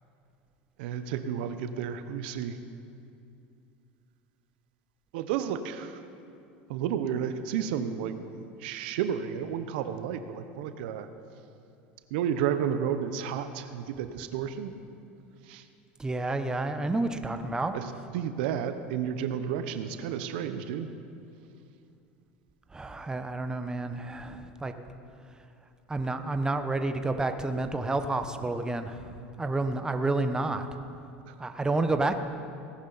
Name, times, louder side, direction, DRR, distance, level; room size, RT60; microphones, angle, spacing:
voice 1, 0.8-2.6 5.1-6.0 6.7-11.1 12.1-14.7 15.5-15.6 17.7-20.9 31.3-31.4, right 8 dB, 75° right, 9 dB, 0.8 m, -32 dB
voice 2, 16.0-17.7 22.7-24.7 25.9-29.0 29.4-30.7 31.4-32.2, right 2 dB, 15° right, 8 dB, 0.8 m, -29 dB
17.5 x 11.0 x 4.1 m, 2.6 s
hypercardioid pair, 95°, 5 cm